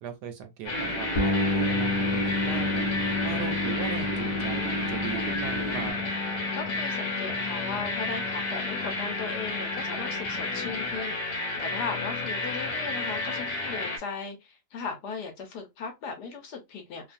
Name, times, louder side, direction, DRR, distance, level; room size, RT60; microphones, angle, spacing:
voice 1, 0.0-2.9 3.2-6.1, right 7 dB, 70° right, 1.1 m, -39 dB
sound 1, 0.6-14.0, left 2 dB, 85° left, 1.5 m, -32 dB
sound 2, 0.7-5.9, right 2 dB, 50° right, 0.7 m, -35 dB
sound 3, 1.1-10.9, left 2 dB, 40° left, 0.9 m, -32 dB
voice 2, 6.5-17.1, left 5 dB, 70° left, 1.3 m, -37 dB
3.1 x 2.3 x 2.5 m
omnidirectional pair, 2.0 m